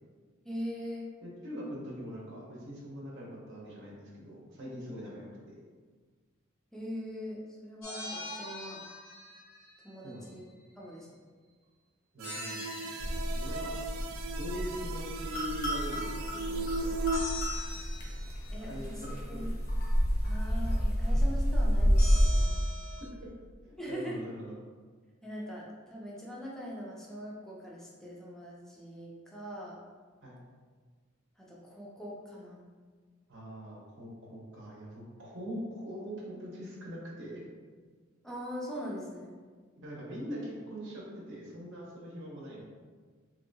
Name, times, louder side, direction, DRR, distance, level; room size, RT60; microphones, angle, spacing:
voice 1, 0.4-1.1 6.7-8.8 9.8-10.4 10.8-11.2 18.5-19.0 19.3-19.5 20.2-22.6 23.8-24.2 25.2-29.8 31.4-32.6 38.2-39.4, equal, ahead, -4 dB, 0.5 m, -41 dB
voice 2, 1.2-5.6 10.0-10.3 12.1-13.7 14.4-17.0 18.6-19.2 23.6-24.6 30.2-30.4 33.3-37.4 39.8-42.6, equal, 65° right, -4 dB, 0.7 m, -42 dB
sound 1, 7.8-9.9 12.2-13.7 17.1-18.8 22.0-23.0, left 1 dB, 75° left, 1.0 m, -43 dB
sound 2, 12.2-17.2, right 4 dB, 80° right, 0.3 m, -37 dB
sound 3, 13.0-22.3, equal, 45° left, 0.7 m, -29 dB
3.1 x 2.7 x 2.6 m, 1.5 s
head